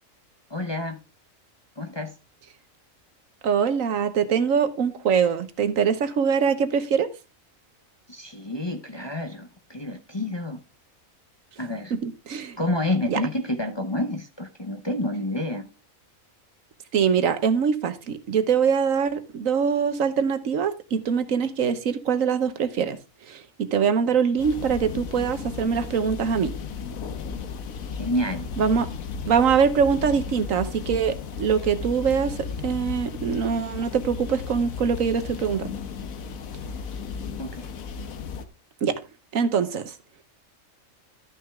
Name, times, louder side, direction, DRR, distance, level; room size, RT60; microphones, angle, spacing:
voice 1, 0.5-1.0 1.8-2.1 8.1-10.6 11.6-11.9 12.6-15.7 28.0-28.5 37.4-37.7, left 1 dB, 25° left, 0.7 m, -29 dB
voice 2, 3.4-7.1 12.0-12.6 13.1-13.2 16.9-23.0 23.3-26.5 28.6-28.9 29.3-32.4 32.6-35.7 38.8-38.9 39.3-39.9, right 6 dB, 75° right, 1.4 m, -23 dB
sound 1, 24.4-38.5, left 5 dB, 85° left, 1.4 m, -35 dB
13.0 x 6.3 x 3.5 m
omnidirectional pair, 1.4 m